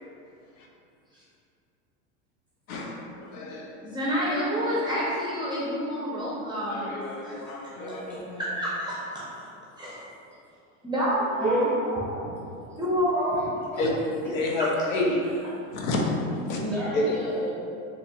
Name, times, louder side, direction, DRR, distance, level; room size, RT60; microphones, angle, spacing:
voice 1, 2.7-3.7 6.7-8.2 13.8-14.0 14.3-15.2 15.7-16.6 16.9-17.1, left 2 dB, 90° left, 0 dB, 0.6 m, -29 dB
voice 2, 3.8-6.9 7.2-7.6 8.4-9.2 9.8-10.1 10.8-12.4 12.8-13.4, equal, 10° right, -8 dB, 0.6 m, -28 dB
voice 3, 7.7-8.6 9.8-10.3 11.4-11.7 12.1-12.2 13.2-13.8 16.4-17.5, equal, 5° left, -10 dB, 1.3 m, -36 dB
3.9 x 2.9 x 2.3 m, 2.5 s
supercardioid pair, 125°, 39 cm